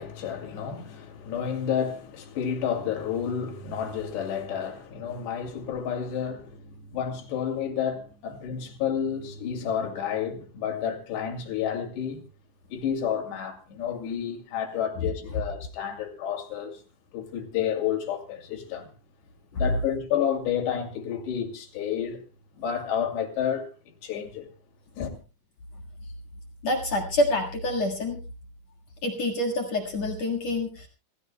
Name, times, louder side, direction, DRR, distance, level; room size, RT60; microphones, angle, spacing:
voice 1, 0.0-12.2 12.7-16.8 17.1-18.9 19.5-22.2 22.6-24.5 25.0-25.2, left 8 dB, 70° left, 4.5 m, -30 dB
voice 2, 26.6-28.2 29.0-30.9, left 1 dB, 55° left, 2.1 m, -27 dB
26.0 x 16.0 x 2.2 m
omnidirectional pair, 5.2 m